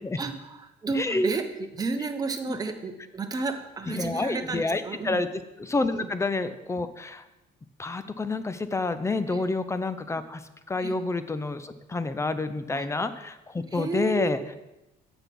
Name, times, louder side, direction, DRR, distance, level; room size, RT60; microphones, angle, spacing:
voice 1, 0.2-5.2 5.9-6.1 9.3-9.4 10.8-11.0 12.7-12.9 13.7-14.4, right 4 dB, 20° right, 5 dB, 0.9 m, -32 dB
voice 2, 1.0-1.3 3.9-7.2 7.8-10.4 10.7-14.4, left 3 dB, 15° left, 11 dB, 0.6 m, -28 dB
8.1 x 5.9 x 5.3 m, 0.97 s
cardioid pair, 110°, 17 cm